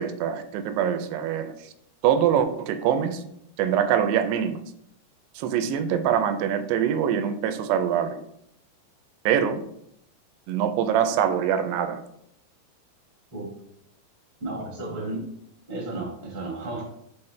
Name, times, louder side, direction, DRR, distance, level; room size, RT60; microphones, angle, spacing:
voice 1, 0.0-1.5 2.0-3.2 3.6-4.6 5.4-8.2 9.3-9.6 10.5-12.0, right 9 dB, 85° right, 9 dB, 2.7 m, -24 dB
voice 2, 14.4-15.3 15.7-16.8, right 2 dB, 25° right, -4 dB, 1.0 m, -33 dB
7.1 x 4.2 x 3.3 m, 0.74 s
omnidirectional pair, 4.7 m